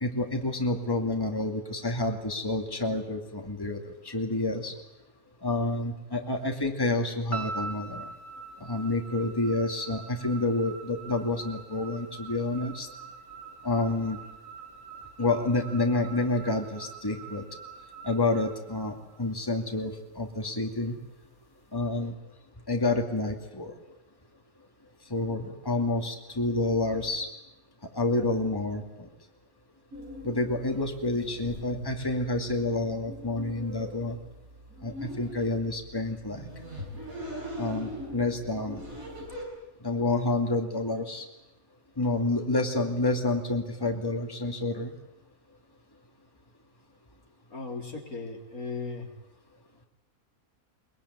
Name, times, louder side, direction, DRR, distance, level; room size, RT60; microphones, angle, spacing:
voice 1, 0.0-3.8 4.0-4.7 5.4-8.1 8.6-12.9 13.6-14.2 15.2-17.4 18.0-21.0 21.7-22.1 22.7-23.7 25.1-27.3 27.9-29.1 30.2-34.2 34.8-36.5 37.6-38.8 39.8-41.2 42.0-44.9, left 2 dB, 15° left, 3 dB, 2.4 m, -29 dB
sound 1, 7.3-19.6, right 5 dB, 65° left, 3.9 m, -43 dB
sound 2, 29.9-39.4, equal, 70° right, 7.9 m, -42 dB
voice 2, 47.5-49.1, left 4 dB, 90° left, 1 dB, 4.1 m, -37 dB
22.5 x 22.0 x 9.6 m, 0.90 s
omnidirectional pair, 1.5 m